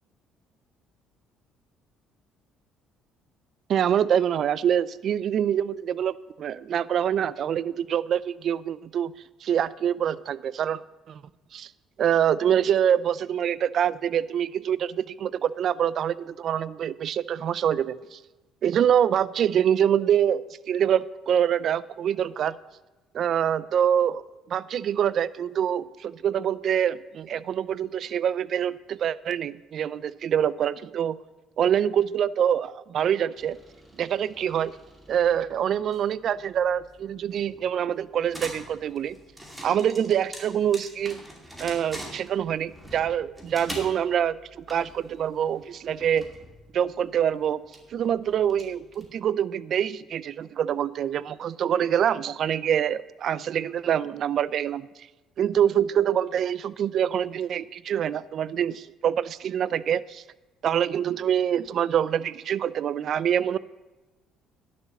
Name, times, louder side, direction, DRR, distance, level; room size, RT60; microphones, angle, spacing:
voice 1, 3.7-9.1 9.4-10.8 11.1-11.2 11.5-11.7 12.0-18.2 18.6-20.4 20.7-22.6 23.1-24.2 24.5-31.2 31.6-33.6 34.0-34.7 35.1-39.2 39.6-41.2 41.6-46.2 46.7-47.6 47.9-54.9 55.4-60.2 60.6-63.6, right 9 dB, 55° right, 19 dB, 0.4 m, -25 dB
sound 1, 33.4-49.3, equal, 5° right, 2.5 m, -45 dB
10.5 x 6.9 x 7.1 m, 1.1 s
cardioid pair, 100°, 0 cm